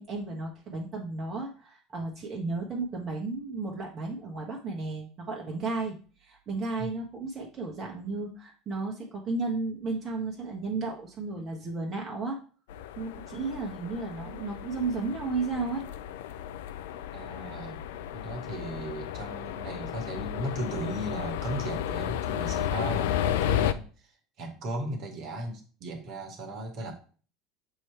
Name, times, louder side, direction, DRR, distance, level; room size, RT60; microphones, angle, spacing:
voice 1, 0.0-12.4 13.0-15.9, right 3 dB, 35° right, -1 dB, 1.3 m, -33 dB
sound 1, 12.7-23.7, left 10 dB, 70° left, 0.4 m, -33 dB
voice 2, 17.1-17.8 18.1-23.9 24.4-26.9, right 1 dB, 50° right, 4 dB, 1.6 m, -36 dB
7.0 x 3.2 x 4.5 m, 0.40 s
hypercardioid pair, 75°, 0 cm